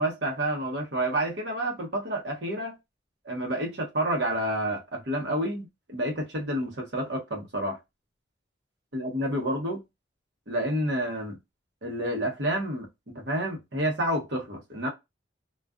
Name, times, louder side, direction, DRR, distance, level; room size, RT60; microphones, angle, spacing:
voice 1, 0.0-2.7 3.2-7.8 8.9-9.8 10.5-11.4 11.8-14.9, right 1 dB, 65° right, 1.0 m, -29 dB
2.4 x 2.3 x 2.3 m
head